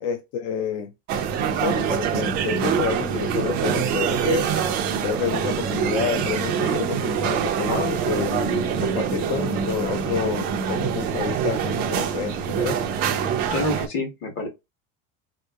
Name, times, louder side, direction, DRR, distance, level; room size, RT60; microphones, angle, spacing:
voice 1, 0.0-0.9 1.4-4.5 5.0-12.8, left 7 dB, 60° left, 0.6 m, -29 dB
sound 1, 1.1-13.9, right 7 dB, 30° right, 0.4 m, -25 dB
voice 2, 13.5-14.5, left 2 dB, 40° left, 1.2 m, -27 dB
3.5 x 2.7 x 2.3 m
cardioid pair, 175°, 33 cm